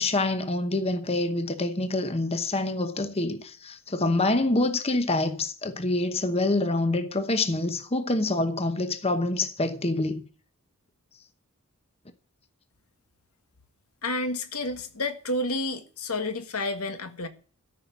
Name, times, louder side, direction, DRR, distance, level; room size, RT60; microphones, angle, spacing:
voice 1, 0.0-10.2, left 2 dB, 25° left, 1.0 m, -26 dB
voice 2, 14.0-17.3, left 2 dB, 80° left, 1.6 m, -30 dB
14.0 x 5.8 x 8.2 m
head